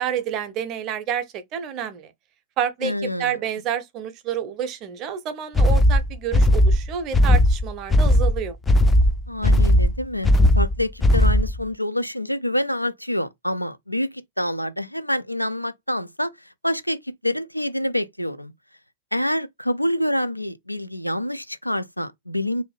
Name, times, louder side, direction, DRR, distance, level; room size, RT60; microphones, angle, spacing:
voice 1, 0.0-2.1 2.6-2.9 3.2-8.6, right 9 dB, 40° right, 0.6 m, -29 dB
voice 2, 2.8-3.4 9.3-10.3 10.6-18.5 19.1-22.6, left 1 dB, 90° left, 0.3 m, -27 dB
sound 1, 5.6-11.6, left 1 dB, 15° left, 0.4 m, -17 dB
2.6 x 2.3 x 3.3 m
figure-of-eight pair, 90°, 0 cm